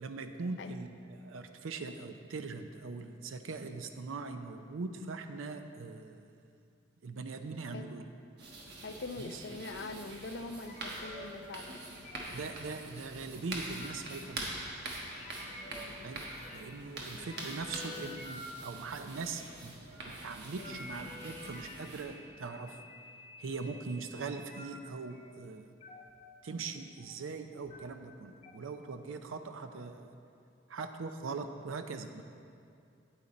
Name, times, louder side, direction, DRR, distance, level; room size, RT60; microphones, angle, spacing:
voice 1, 0.0-6.3 7.0-8.1 9.2-9.4 12.3-14.5 16.0-16.2 16.5-22.8 23.4-25.7 26.4-30.1 30.7-32.2, right 4 dB, 85° right, 7 dB, 0.5 m, -41 dB
sound 1, 8.4-22.0, right 2 dB, 55° right, 1.2 m, -44 dB
voice 2, 8.8-11.8 15.7-16.1 17.2-17.5, left 3 dB, 60° left, 7 dB, 0.5 m, -43 dB
sound 2, 10.7-11.2 11.5-11.8 12.0-12.4 13.3-14.2 15.1-15.8 16.1-16.8 17.1-18.5 19.1-19.3 19.8-20.1 20.6-24.7 25.1-25.3 25.8-26.1 26.5-27.2 27.5-27.8 28.4-28.5, left 2 dB, 35° left, 1.1 m, -50 dB
8.9 x 8.4 x 4.2 m, 2.4 s
head